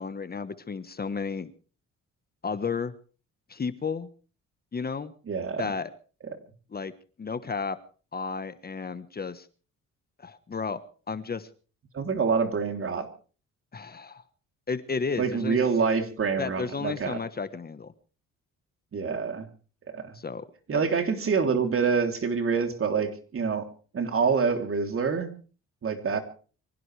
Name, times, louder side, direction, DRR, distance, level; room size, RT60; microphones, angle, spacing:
voice 1, 0.0-1.5 2.4-2.9 3.5-4.1 4.7-5.1 5.6-5.9 6.7-6.9 7.2-7.8 8.1-9.5 10.2-10.8 11.1-11.5 13.7-14.2 14.7-15.6 16.4-17.9 20.1-20.4 20.7-20.9, left 5 dB, 30° left, 12 dB, 1.3 m, -32 dB
voice 2, 5.3-5.7 11.9-13.1 15.2-17.2 18.9-19.5 19.9-20.1 20.7-23.7 23.9-25.3 25.8-26.2, right 5 dB, 45° right, 6 dB, 3.3 m, -26 dB
24.5 x 16.5 x 3.4 m, 0.39 s
cardioid pair, 90°, 30 cm